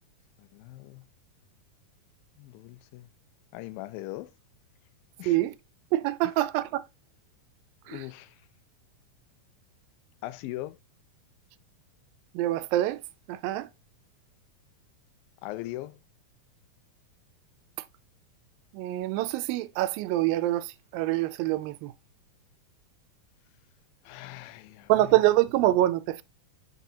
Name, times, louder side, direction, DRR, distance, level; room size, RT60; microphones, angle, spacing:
voice 1, 0.4-1.1 2.4-3.1 3.5-4.4 5.2-5.4 7.9-8.4 10.2-10.8 15.4-16.0 24.0-25.2, left 17 dB, 90° left, 2.4 m, -40 dB
voice 2, 5.2-5.6 5.9-6.8 7.9-8.0 12.3-13.0 13.3-13.7 18.7-21.9 24.9-26.2, right 15 dB, 90° right, 2.3 m, -25 dB
8.9 x 4.6 x 2.7 m
omnidirectional pair, 4.0 m